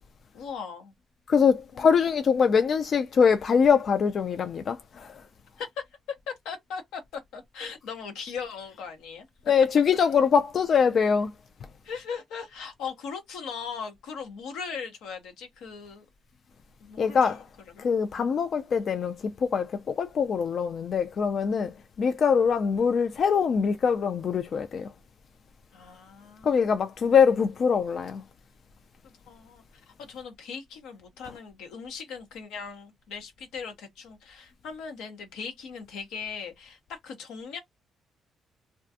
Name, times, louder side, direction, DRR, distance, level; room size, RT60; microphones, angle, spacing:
voice 1, 0.3-0.9 1.7-1.9 5.6-5.8 6.3-9.3 11.8-16.1 16.8-17.4 17.8-17.9 25.7-26.7 29.0-29.6 30.0-37.6, left 6 dB, 90° left, 0.8 m, -39 dB
voice 2, 1.3-5.2 9.5-11.3 17.0-17.4 17.8-24.9 26.4-28.2, left 6 dB, 55° left, 0.3 m, -23 dB
2.4 x 2.2 x 2.6 m
cardioid pair, 90°, 0 cm